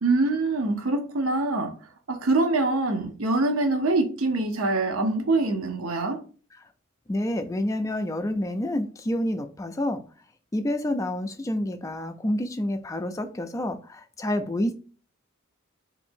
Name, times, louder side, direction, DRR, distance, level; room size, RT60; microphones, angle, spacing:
voice 1, 0.0-1.7 2.1-6.2, right 2 dB, 75° right, 0.7 m, -24 dB
voice 2, 7.1-10.0 10.5-14.7, left 1 dB, 15° left, 0.3 m, -28 dB
2.7 x 2.6 x 4.3 m
head